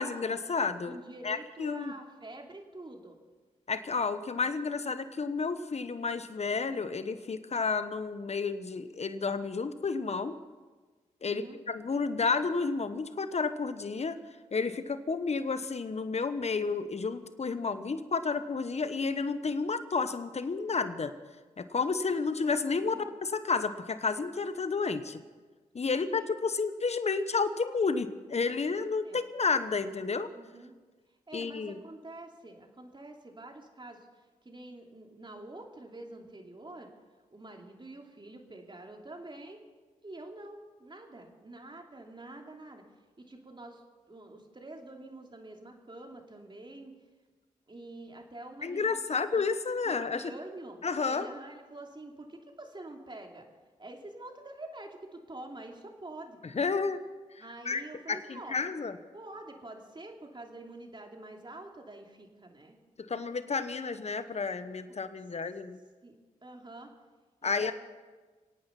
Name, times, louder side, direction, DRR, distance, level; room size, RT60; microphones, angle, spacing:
voice 1, 0.0-1.0 1.2-1.9 3.7-10.3 11.2-14.2 14.5-21.1 21.6-22.9 23.2-25.2 25.7-30.3 31.3-31.8 48.6-50.3 50.8-51.3 56.5-57.0 57.3-57.8 58.1-59.0 63.0-65.8 67.4-67.7, left 4 dB, 45° left, 11 dB, 1.1 m, -31 dB
voice 2, 0.9-3.2 11.2-11.6 22.8-23.1 25.8-26.3 29.0-29.2 30.3-30.7 31.3-36.9 37.3-39.6 40.0-42.8 43.2-46.9 47.7-49.0 49.3-49.5 49.8-53.5 53.8-56.4 57.4-58.6 59.1-62.8 66.0-66.9 67.4-67.7, right 2 dB, 30° right, 2 dB, 2.9 m, -47 dB
24.5 x 8.9 x 5.9 m, 1.3 s
supercardioid pair, 40°, 15 cm